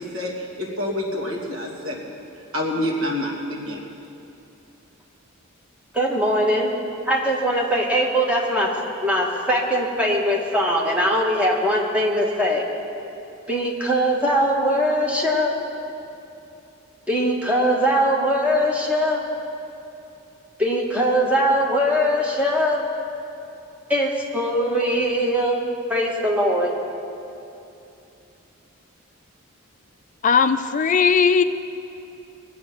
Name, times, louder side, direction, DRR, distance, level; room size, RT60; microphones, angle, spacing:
voice 1, 0.0-2.1 2.5-3.8, left 1 dB, 75° right, 2.7 m, -27 dB
voice 2, 5.9-6.7 7.1-8.7 9.0-12.7 13.5-15.5 17.1-19.2 20.6-22.8 23.9-25.6 25.9-26.7, equal, 5° right, 1.8 m, -21 dB
voice 3, 30.2-31.4, left 6 dB, 40° left, 0.4 m, -18 dB
22.0 x 8.4 x 6.2 m
head